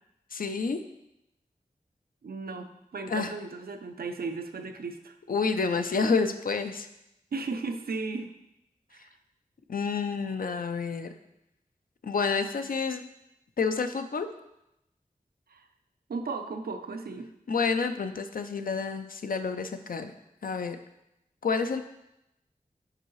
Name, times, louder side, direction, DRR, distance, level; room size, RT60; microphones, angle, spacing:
voice 1, 0.3-0.8 3.1-3.3 5.3-6.9 9.7-11.1 12.0-13.0 13.6-14.3 17.5-20.1 20.4-20.8 21.4-21.8, left 5 dB, 70° left, 8 dB, 0.5 m, -29 dB
voice 2, 2.2-5.1 7.3-8.3 8.9-9.2 15.5-15.6 16.1-17.3, right 4 dB, 90° right, 7 dB, 0.5 m, -35 dB
6.7 x 4.6 x 3.1 m, 0.87 s
wide cardioid pair, 60°, 15 cm